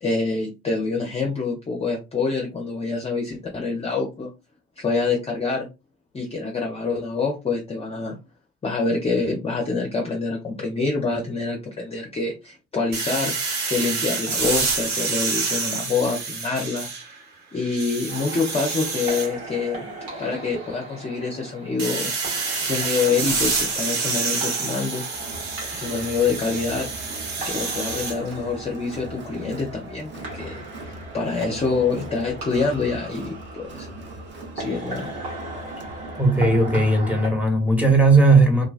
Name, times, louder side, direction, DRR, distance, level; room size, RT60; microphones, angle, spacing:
voice 1, 0.0-4.3 4.8-5.7 6.1-8.2 8.6-13.3 13.7-16.9 17.5-19.8 20.2-22.1 22.6-25.0 25.7-26.9 27.5-33.9 34.6-35.1, left 4 dB, 20° left, 0.5 m, -26 dB
sound 1, 12.9-17.2 17.6-19.3 21.8-28.2, right 4 dB, 60° right, 1.0 m, -27 dB
sound 2, 18.1-37.3, right 1 dB, 85° right, 1.2 m, -38 dB
Crowd, 25.1-36.9, right 1 dB, 35° right, 0.7 m, -40 dB
voice 2, 36.2-38.7, right 2 dB, 5° right, 1.1 m, -17 dB
2.4 x 2.1 x 2.4 m
hypercardioid pair, 70°, 31 cm